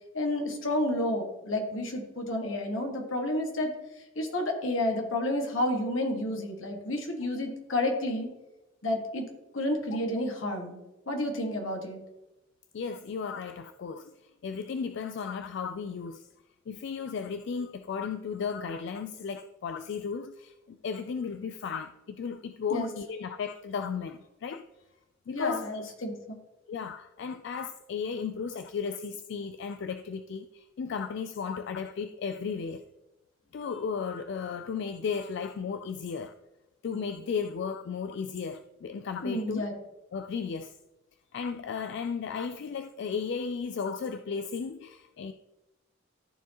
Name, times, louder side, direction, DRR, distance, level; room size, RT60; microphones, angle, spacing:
voice 1, 0.1-3.7 4.1-8.3 8.8-9.3 9.5-10.8 11.1-12.0 22.7-22.9 25.3-26.4 39.2-39.7, left 1 dB, 85° left, 1.6 m, -30 dB
voice 2, 12.7-16.3 16.7-24.6 25.3-25.8 26.7-32.8 33.5-36.3 36.8-39.7 40.1-40.8 41.3-45.3, left 6 dB, 60° left, 0.3 m, -35 dB
13.0 x 4.6 x 2.9 m
head